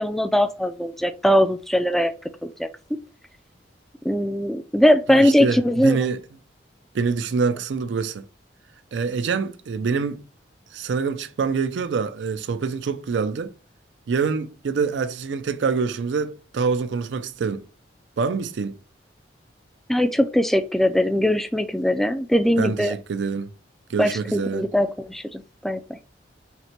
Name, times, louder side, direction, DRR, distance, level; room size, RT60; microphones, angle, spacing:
voice 1, 0.0-2.1 2.6-2.7 4.0-6.0 19.9-22.9 24.0-26.0, equal, ahead, 0.3 m, -20 dB
voice 2, 5.1-6.2 6.9-8.2 8.9-10.2 10.7-13.5 14.1-17.7 18.2-18.8 22.6-23.5 23.9-24.7, right 5 dB, 75° right, 0.4 m, -25 dB
5.8 x 2.1 x 2.8 m
head